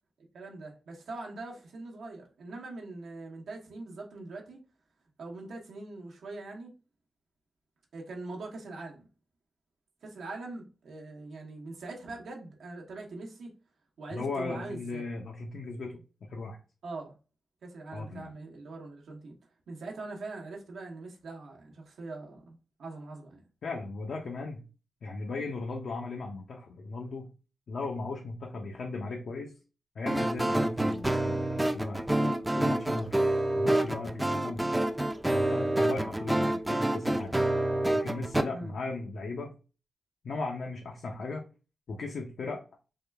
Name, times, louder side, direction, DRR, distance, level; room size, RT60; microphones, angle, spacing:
voice 1, 0.3-4.6 5.2-6.7 7.9-9.1 10.0-13.5 14.0-15.1 16.8-17.1 17.6-19.3 19.7-23.4 38.5-38.7, right 3 dB, 90° right, 0.9 m, -42 dB
voice 2, 14.1-15.9 16.2-16.6 17.9-18.3 23.6-24.6 25.0-27.3 27.7-29.5 30.0-32.1 32.6-33.1 33.5-34.7 35.3-37.4 37.9-39.5 40.2-41.4 41.9-42.6, left 3 dB, 70° left, 0.6 m, -37 dB
sound 1, 30.1-38.4, right 1 dB, 10° right, 0.4 m, -28 dB
3.6 x 2.3 x 3.3 m
wide cardioid pair, 110°, 0 cm